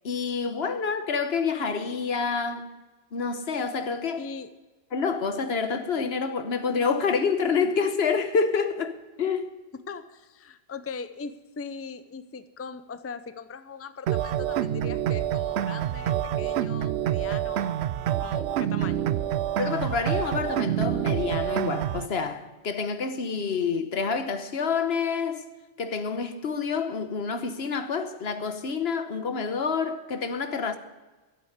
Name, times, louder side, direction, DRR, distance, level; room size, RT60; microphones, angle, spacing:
voice 1, 0.0-2.7 3.1-4.3 4.9-9.5 19.6-25.4 25.8-30.8, left 5 dB, 70° left, 1.3 m, -28 dB
voice 2, 4.2-4.5 9.9-17.8 18.2-19.0, left 5 dB, 20° left, 0.5 m, -40 dB
sound 1, 14.1-22.1, right 11 dB, 85° right, 0.8 m, -27 dB
13.5 x 8.3 x 8.0 m
omnidirectional pair, 1.1 m